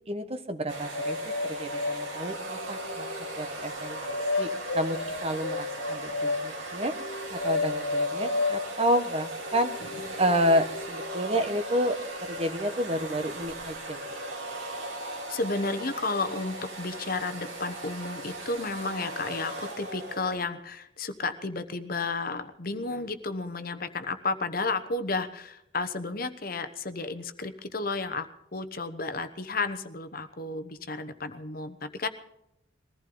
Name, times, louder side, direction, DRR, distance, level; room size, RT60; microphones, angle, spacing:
voice 1, 0.1-1.2 1.4-3.1 3.4-6.9 7.3-9.7 10.2-14.0, equal, 30° right, 8 dB, 1.1 m, -30 dB
sound 1, 0.7-20.4, right 1 dB, 75° right, 3.2 m, -38 dB
sound 2, 0.9-3.3 4.0-6.4 6.9-8.6 9.1-11.1, left 3 dB, 90° left, 1.6 m, -32 dB
voice 2, 15.3-32.1, left 3 dB, 45° left, 10 dB, 1.0 m, -32 dB
21.5 x 15.0 x 3.9 m, 0.80 s
head